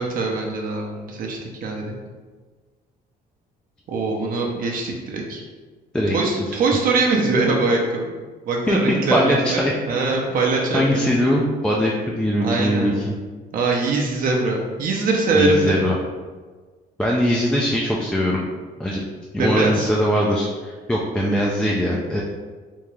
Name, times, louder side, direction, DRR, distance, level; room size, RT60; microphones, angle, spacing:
voice 1, 0.0-2.0 3.9-5.4 6.1-8.1 8.4-9.6 9.9-11.1 12.4-13.0 13.5-15.8 19.4-19.9, right 3 dB, 55° right, 0 dB, 0.7 m, -22 dB
voice 2, 8.7-9.8 10.1-10.2 10.7-13.1 15.3-15.9 17.0-18.5 18.8-19.0 19.3-22.2, equal, 5° left, -3 dB, 0.4 m, -21 dB
3.5 x 2.8 x 3.2 m, 1.4 s
cardioid pair, 110°, 17 cm